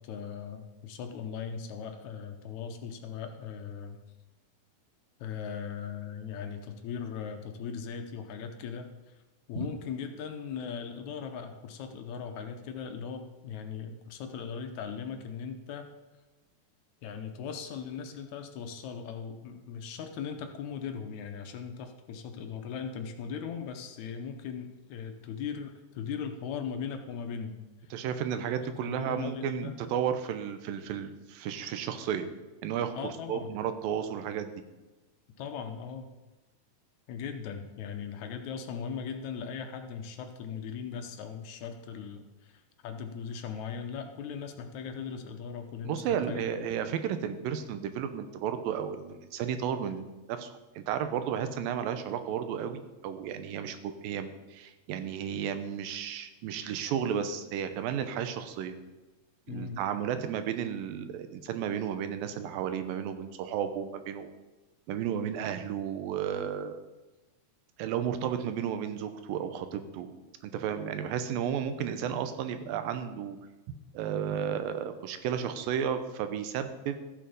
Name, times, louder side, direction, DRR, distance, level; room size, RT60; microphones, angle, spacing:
voice 1, 0.0-4.0 5.2-9.1 9.5-15.9 17.0-27.6 28.5-29.7 32.9-33.5 35.4-36.1 37.1-46.5 59.5-59.8, left 6 dB, 70° left, 6 dB, 2.0 m, -39 dB
voice 2, 27.9-32.3 32.6-32.9 33.3-34.5 45.9-58.8 59.5-64.3 64.9-66.8 67.8-70.1 70.4-73.4 73.9-77.0, right 8 dB, 85° right, 9 dB, 2.6 m, -33 dB
14.0 x 7.4 x 5.2 m, 1.1 s
omnidirectional pair, 4.0 m